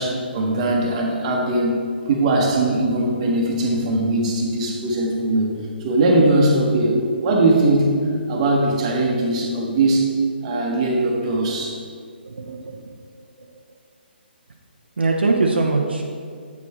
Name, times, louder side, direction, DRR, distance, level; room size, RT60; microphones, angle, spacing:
voice 1, 0.0-1.8 2.1-8.0 8.3-10.1 10.4-11.8, right 2 dB, 35° right, 0 dB, 1.2 m, -20 dB
voice 2, 12.3-12.8 15.0-16.0, right 3 dB, 75° right, 0 dB, 0.7 m, -21 dB
8.2 x 4.6 x 4.3 m, 2.1 s
figure-of-eight pair, 140°, 6 cm